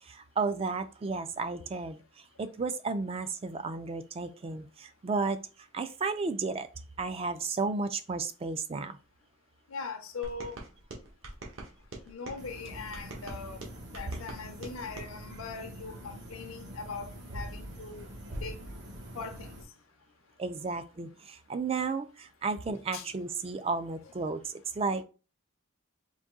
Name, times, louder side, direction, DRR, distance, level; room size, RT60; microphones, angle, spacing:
voice 1, 0.0-6.7 7.0-9.0 20.4-25.0, right 4 dB, 30° right, 0.3 m, -33 dB
voice 2, 9.7-10.6 12.1-13.6 13.9-18.1 18.4-18.6 19.1-19.6 22.7-23.1, left 4 dB, 80° left, 0.6 m, -41 dB
sound 1, 10.2-12.4 12.9-15.1, right 2 dB, 70° right, 1.2 m, -44 dB
sound 2, 12.4-19.6, equal, 55° right, 1.0 m, -44 dB
3.9 x 2.6 x 3.6 m
head